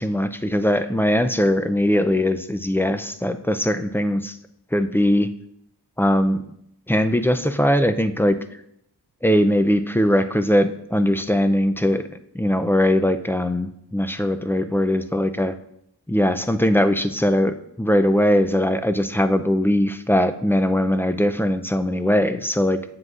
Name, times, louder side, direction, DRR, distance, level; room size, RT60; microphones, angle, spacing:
voice 1, 0.0-4.4 4.7-5.3 6.0-6.4 6.9-8.4 9.2-15.6 16.1-22.8, left 1 dB, 5° left, 9 dB, 0.4 m, -20 dB
7.7 x 7.6 x 2.4 m, 0.75 s
wide cardioid pair, 60°, 41 cm